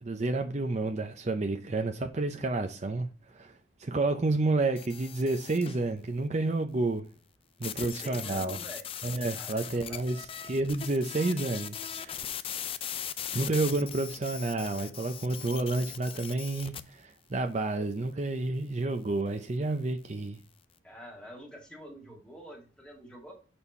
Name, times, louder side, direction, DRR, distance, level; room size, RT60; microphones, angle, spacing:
voice 1, 0.0-3.5 3.8-7.1 7.6-8.6 9.0-12.2 13.3-20.4, right 2 dB, 40° right, 0.6 m, -30 dB
sound 1, 4.8-5.8 7.6-16.8, left 9 dB, 30° left, 0.4 m, -39 dB
voice 2, 7.8-8.8 9.3-10.0 20.8-23.3, equal, 5° left, 1.8 m, -47 dB
7.1 x 4.3 x 4.3 m
head